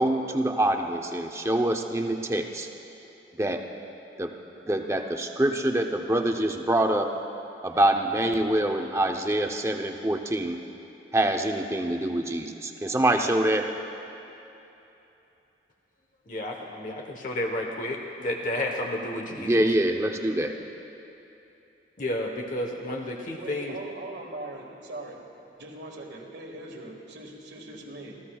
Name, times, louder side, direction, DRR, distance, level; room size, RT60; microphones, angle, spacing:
voice 1, 0.0-2.7 3.4-3.6 4.2-4.3 4.7-7.1 7.6-10.6 11.1-13.7 19.4-20.6, right 1 dB, 15° right, 4 dB, 0.7 m, -25 dB
voice 2, 16.3-19.6 22.0-23.8, left 1 dB, 45° left, 1 dB, 1.0 m, -31 dB
voice 3, 23.4-25.2 25.6-28.2, right 2 dB, 75° right, 0 dB, 1.9 m, -40 dB
27.5 x 15.0 x 2.3 m, 2.9 s
head